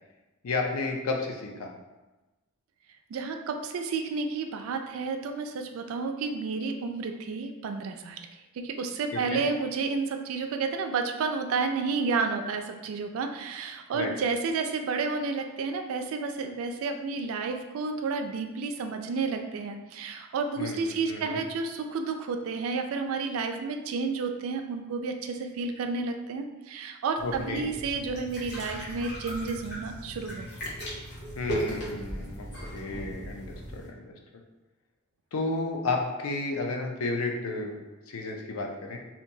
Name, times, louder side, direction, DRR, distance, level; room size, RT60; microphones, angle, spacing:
voice 1, 0.4-1.7 9.1-9.4 13.9-14.1 20.6-21.4 27.2-27.7 31.4-34.4 35.3-37.8 38.1-39.0, left 3 dB, 80° left, 2 dB, 0.5 m, -32 dB
voice 2, 3.1-8.3 8.5-30.5, right 4 dB, 70° right, 5 dB, 0.3 m, -31 dB
sound 1, 27.2-33.9, right 1 dB, 50° left, 0.8 m, -37 dB
2.8 x 2.2 x 2.6 m, 1.1 s
head